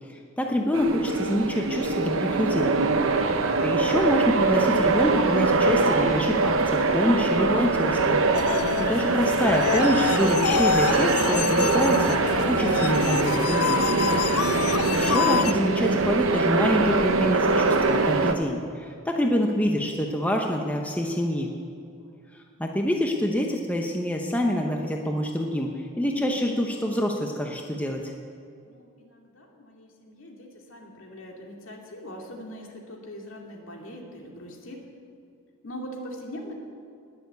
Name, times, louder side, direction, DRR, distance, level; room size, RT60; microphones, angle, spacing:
voice 1, 0.4-2.7 3.6-13.9 14.9-21.5 22.6-28.1, equal, 5° left, 1 dB, 0.9 m, -26 dB
sound 1, 0.7-18.3, right 3 dB, 60° right, 0.9 m, -23 dB
sound 2, 8.3-15.5, left 8 dB, 80° left, 0.4 m, -27 dB
voice 2, 28.6-34.9 35.6-36.5, equal, 60° left, 0 dB, 2.5 m, -42 dB
20.0 x 7.2 x 8.1 m, 2.4 s
head